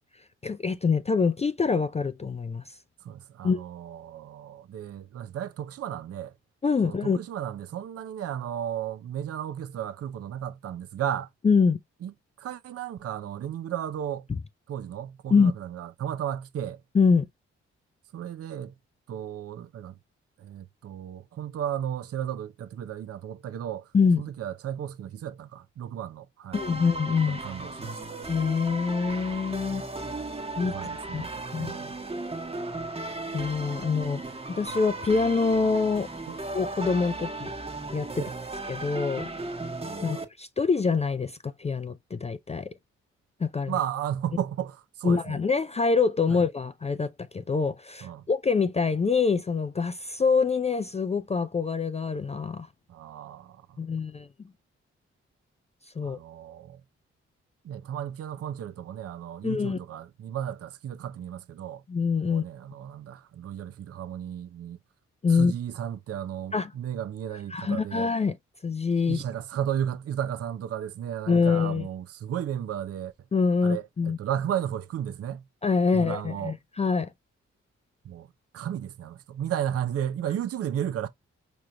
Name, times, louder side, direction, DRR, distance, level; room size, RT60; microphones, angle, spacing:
voice 1, 0.4-2.7 3.4-3.6 6.6-7.2 11.4-11.8 15.3-15.5 16.9-17.3 23.9-24.2 26.5-27.4 28.3-29.8 30.6-30.7 31.1-31.2 31.5-31.7 33.3-34.2 34.5-36.1 36.5-37.5 37.9-38.2 38.7-39.3 40.0-42.7 43.4-43.7 45.0-52.7 53.8-54.3 56.0-56.2 59.4-59.8 61.9-62.4 65.2-65.5 66.5-66.7 67.5-68.4 68.6-69.2 71.3-71.9 73.3-74.2 75.6-77.1, left 5 dB, 20° left, 0.4 m, -25 dB
voice 2, 3.0-6.3 6.8-11.3 12.0-14.3 14.7-16.8 18.1-18.7 19.1-20.0 20.4-23.9 24.2-26.6 27.3-28.2 30.6-31.9 36.3-36.4 38.2-38.3 40.1-40.2 43.7-45.4 46.3-46.4 48.0-48.3 52.9-53.8 56.0-56.8 57.6-61.8 62.3-64.8 65.3-68.1 69.1-73.1 73.6-75.4 75.9-76.6 78.0-78.3 78.5-81.1, right 10 dB, 50° right, 0.5 m, -34 dB
sound 1, 26.5-40.2, right 2 dB, 20° right, 1.1 m, -36 dB
4.8 x 3.0 x 2.2 m
supercardioid pair, 45°, 30 cm